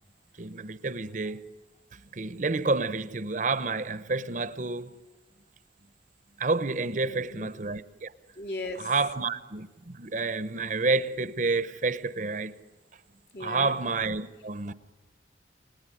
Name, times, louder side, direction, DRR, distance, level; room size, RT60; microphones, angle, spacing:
voice 1, 0.4-1.4 2.1-4.9 6.4-8.1 8.8-12.6 13.4-14.7, right 3 dB, 45° right, 0.8 m, -29 dB
voice 2, 7.0-7.5 8.4-8.9 13.3-13.7, left 2 dB, 60° left, 2.7 m, -37 dB
29.5 x 18.0 x 9.9 m
head